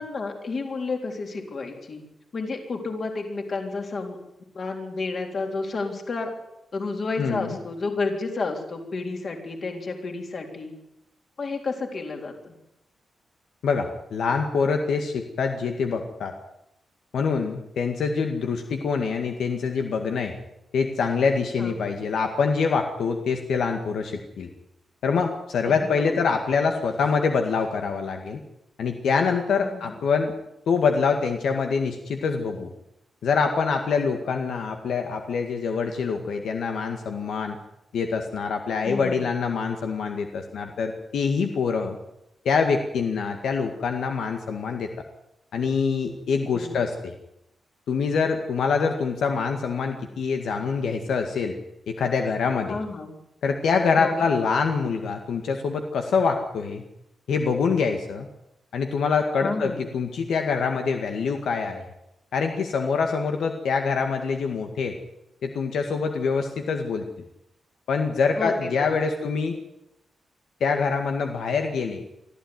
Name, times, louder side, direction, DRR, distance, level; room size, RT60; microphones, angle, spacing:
voice 1, 0.0-2.0 2.3-4.2 4.5-6.3 6.7-10.7 11.4-12.5 21.6-22.0 25.6-26.3 29.5-29.9 38.8-39.3 46.5-46.8 52.7-53.1 54.0-54.3 59.4-59.9 68.4-69.0, left 3 dB, 40° left, 3 dB, 3.8 m, -31 dB
voice 2, 7.2-7.6 13.6-16.3 17.1-20.4 20.7-24.5 25.0-28.4 28.8-30.3 30.7-32.7 33.2-37.6 37.9-42.0 42.5-44.9 45.5-47.1 47.9-51.6 51.9-52.8 53.4-56.8 57.3-58.3 58.7-61.8 62.3-65.0 65.4-67.0 67.9-69.6 70.6-72.0, left 5 dB, 80° left, 4 dB, 2.0 m, -25 dB
24.0 x 14.0 x 9.7 m, 0.85 s
wide cardioid pair, 180°, 0 cm